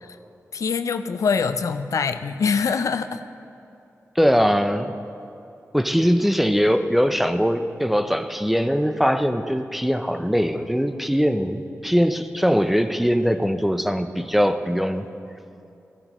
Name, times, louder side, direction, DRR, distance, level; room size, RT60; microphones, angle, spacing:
voice 1, 0.5-3.2, left 5 dB, 75° left, 10 dB, 0.4 m, -24 dB
voice 2, 4.2-4.9 5.7-15.1, equal, 5° right, 9 dB, 0.5 m, -21 dB
14.0 x 12.0 x 3.0 m, 2.7 s
wide cardioid pair, 85°, 6 cm